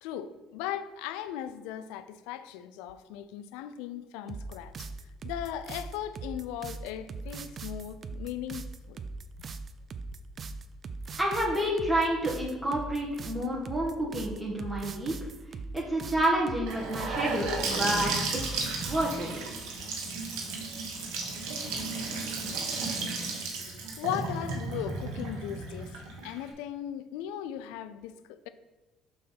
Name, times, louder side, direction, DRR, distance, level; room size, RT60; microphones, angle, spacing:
voice 1, 0.0-4.9 5.2-9.0 23.6-28.5, left 10 dB, 85° left, 0.3 m, -38 dB
sound 1, 4.3-19.2, right 4 dB, 45° right, 0.5 m, -40 dB
voice 2, 11.2-15.1 15.7-19.3, right 1 dB, 5° right, 1.5 m, -29 dB
Gurgling / Sink (filling or washing) / Bathtub (filling or washing), 16.7-26.5, right 3 dB, 80° right, 1.3 m, -34 dB
5.3 x 4.1 x 5.7 m
supercardioid pair, 70°, 0 cm